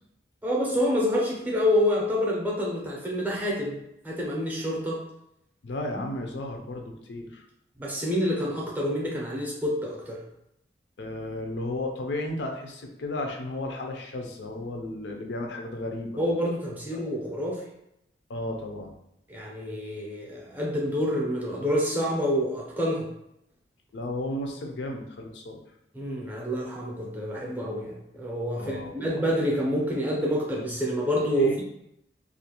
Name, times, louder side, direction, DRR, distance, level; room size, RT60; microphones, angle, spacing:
voice 1, 0.4-3.8 4.0-5.0 7.8-10.2 16.2-17.7 19.3-23.1 25.9-31.6, equal, 10° right, -3 dB, 0.5 m, -27 dB
voice 2, 5.6-7.5 11.0-16.2 16.9-17.0 18.3-18.9 23.9-25.6 28.6-29.0 31.4-31.6, left 1 dB, 80° left, 2 dB, 0.4 m, -34 dB
2.4 x 2.2 x 2.8 m, 0.80 s
head